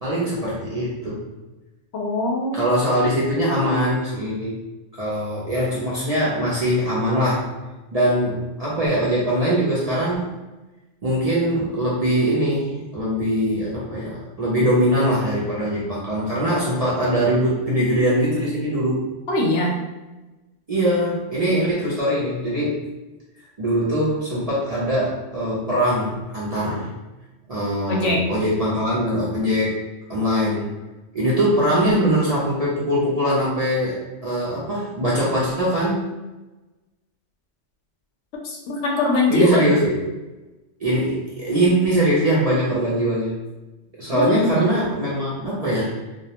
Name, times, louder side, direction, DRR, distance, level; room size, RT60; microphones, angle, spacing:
voice 1, 0.0-1.2 2.5-4.6 4.9-7.6 7.9-10.3 11.0-19.0 20.7-22.9 23.6-26.9 27.5-29.8 30.1-30.7 31.1-36.1 39.3-40.0 40.8-43.4 44.0-45.9, equal, 45° right, -8 dB, 0.5 m, -22 dB
voice 2, 1.9-2.8 19.3-19.8 27.9-28.3 38.4-39.7 44.1-44.7, left 2 dB, 70° left, -1 dB, 0.8 m, -22 dB
2.2 x 2.0 x 2.7 m, 1.1 s
omnidirectional pair, 1.2 m